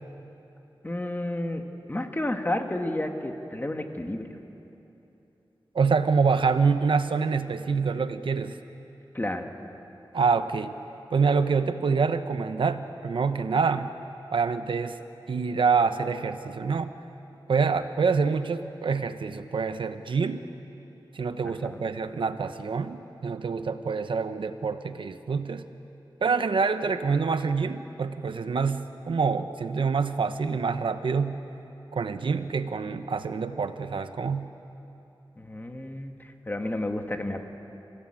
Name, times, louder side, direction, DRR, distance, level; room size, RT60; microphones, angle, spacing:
voice 1, 0.8-1.6 1.9-4.3 9.1-9.5 21.6-21.8 35.4-37.4, left 1 dB, 25° left, 4 dB, 1.9 m, -31 dB
voice 2, 5.7-8.6 10.1-10.7 11.1-13.9 14.3-15.0 15.3-16.9 17.5-20.4 21.1-25.7 26.2-31.4 31.9-34.5, right 5 dB, 80° right, 10 dB, 0.9 m, -26 dB
30.0 x 16.5 x 8.9 m, 3.0 s
wide cardioid pair, 90°, 9 cm